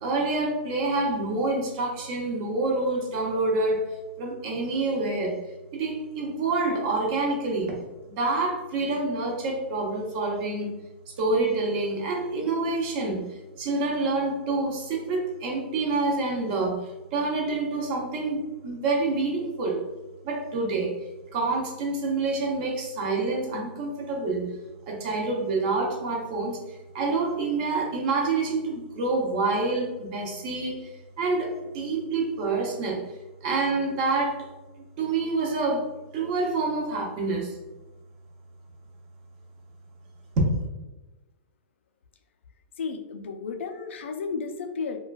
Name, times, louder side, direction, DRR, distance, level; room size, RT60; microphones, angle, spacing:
voice 1, 0.0-3.8 4.2-5.4 5.7-7.8 8.2-10.7 11.2-13.2 13.6-16.8 17.1-19.8 20.3-20.9 21.3-24.5 24.9-26.6 26.9-30.8 31.2-33.0 33.4-34.3 35.0-35.8 36.1-37.5 40.4-40.5, right 3 dB, 45° right, 0 dB, 0.7 m, -27 dB
voice 2, 42.8-45.0, left 5 dB, 85° left, 6 dB, 0.4 m, -33 dB
3.0 x 2.2 x 2.3 m, 1.1 s
hypercardioid pair, 145°, 6 cm